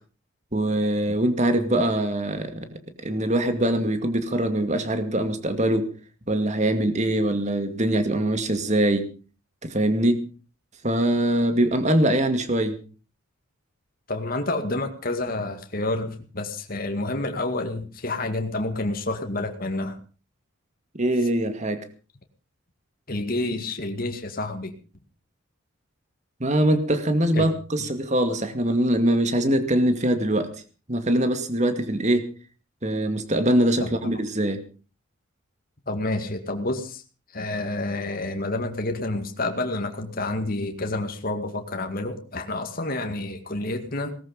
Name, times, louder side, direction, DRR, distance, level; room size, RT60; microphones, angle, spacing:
voice 1, 0.5-2.7 3.0-5.9 6.3-9.1 9.6-10.2 10.8-12.8 20.9-21.8 26.4-30.5 30.9-32.3 32.8-34.6, right 1 dB, 35° right, 8 dB, 2.2 m, -23 dB
voice 2, 14.1-20.0 23.1-24.8 27.3-27.5 27.8-27.9 33.8-34.1 35.9-37.0 37.3-44.2, left 2 dB, 45° left, 5 dB, 2.1 m, -29 dB
19.0 x 14.0 x 5.2 m, 0.38 s
head